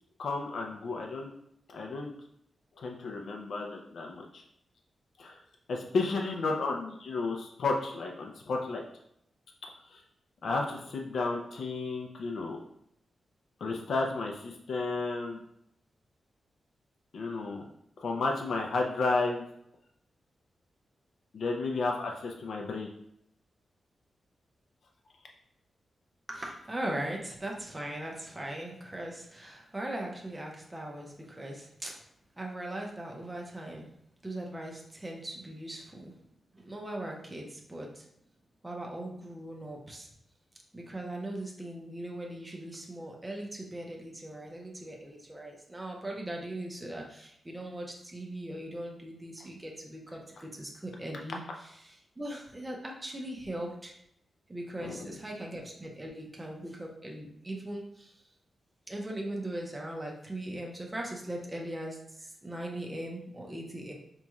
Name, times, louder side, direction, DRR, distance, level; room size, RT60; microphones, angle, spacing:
voice 1, 0.2-1.3 1.7-2.1 2.8-4.4 5.2-5.4 5.7-8.8 9.9-10.0 10.4-12.6 13.6-15.4 17.1-17.7 18.0-19.4 21.3-22.9 54.8-55.1, left 3 dB, 65° left, 1 dB, 0.4 m, -32 dB
voice 2, 26.3-32.0 32.4-33.9 34.2-36.1 36.5-38.1 38.6-40.1 40.7-51.4 51.8-53.9 54.5-58.1 58.9-63.9, right 1 dB, 15° right, -1 dB, 0.5 m, -39 dB
5.2 x 3.0 x 2.3 m, 0.75 s
wide cardioid pair, 165°, 0 cm